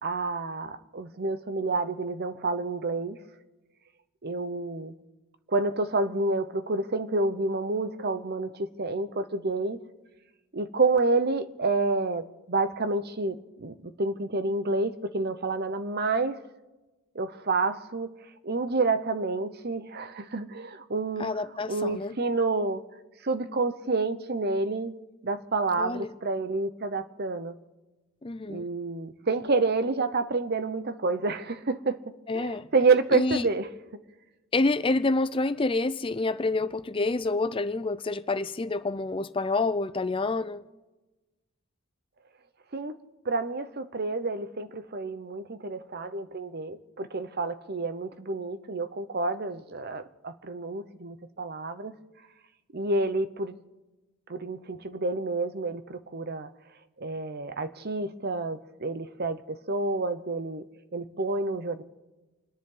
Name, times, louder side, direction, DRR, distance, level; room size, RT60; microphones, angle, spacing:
voice 1, 0.0-3.2 4.2-4.9 5.5-9.8 10.5-16.4 17.1-18.1 18.4-21.4 21.7-22.8 23.2-25.0 25.2-27.6 28.5-33.7 42.7-43.0 43.2-51.9 52.7-53.6 54.3-56.5 57.0-60.6 60.9-61.8, right 3 dB, 50° right, 0.9 m, -29 dB
voice 2, 21.2-22.1 25.8-26.1 28.2-28.7 32.3-32.7 33.1-33.4 34.5-40.6, left 3 dB, 25° left, 0.5 m, -28 dB
29.5 x 10.5 x 3.9 m
head